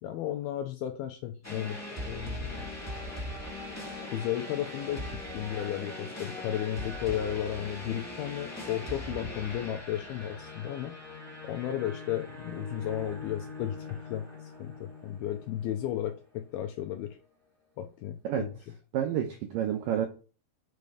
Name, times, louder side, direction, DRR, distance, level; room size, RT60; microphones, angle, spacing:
voice 1, 0.0-2.7 4.0-5.1 5.3-10.9 11.4-17.2 17.8-18.5, left 11 dB, 80° left, 6 dB, 2.3 m, -34 dB
sound 1, 1.4-16.2, left 1 dB, 20° left, 0.4 m, -41 dB
voice 2, 18.9-20.1, right 9 dB, 85° right, 5 dB, 1.9 m, -29 dB
7.0 x 5.2 x 4.9 m, 0.34 s
omnidirectional pair, 5.1 m